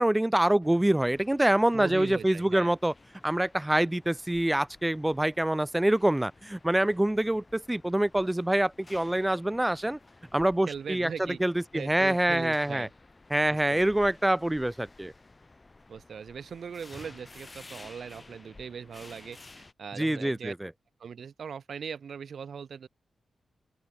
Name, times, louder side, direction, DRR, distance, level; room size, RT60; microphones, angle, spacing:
voice 1, 0.0-2.9 3.2-10.0 10.3-12.9 13.3-15.1 20.0-20.7, right 1 dB, 10° right, 0.4 m, -25 dB
sound 1, 0.6-19.7, left 3 dB, 25° left, 4.8 m, -54 dB
voice 2, 1.7-2.7 10.7-11.4 11.7-12.9 13.5-13.9 15.9-20.5 21.0-22.9, right 6 dB, 65° right, 0.6 m, -40 dB
open air
wide cardioid pair, 115°, 0 cm